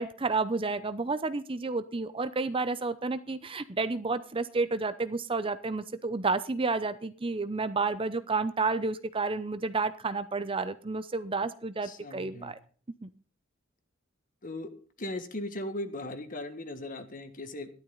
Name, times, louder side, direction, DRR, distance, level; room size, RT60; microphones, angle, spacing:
voice 1, 0.0-12.6 13.0-13.1, right 3 dB, 25° right, 13 dB, 0.6 m, -31 dB
voice 2, 11.8-12.5 14.4-14.7 15.0-17.7, left 1 dB, 40° left, 9 dB, 1.6 m, -38 dB
13.5 x 12.0 x 3.9 m, 0.41 s
head